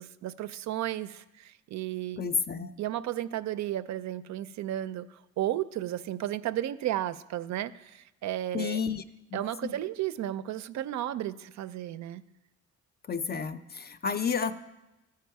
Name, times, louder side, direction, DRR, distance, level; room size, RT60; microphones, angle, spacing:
voice 1, 0.0-2.2 2.8-8.8 9.3-12.2, right 13 dB, 65° right, 14 dB, 0.4 m, -33 dB
voice 2, 2.2-2.7 8.5-9.0 9.6-9.8 13.1-14.5, left 6 dB, 35° left, 11 dB, 0.5 m, -30 dB
13.5 x 4.7 x 4.7 m, 0.98 s
cardioid pair, 90°, 30 cm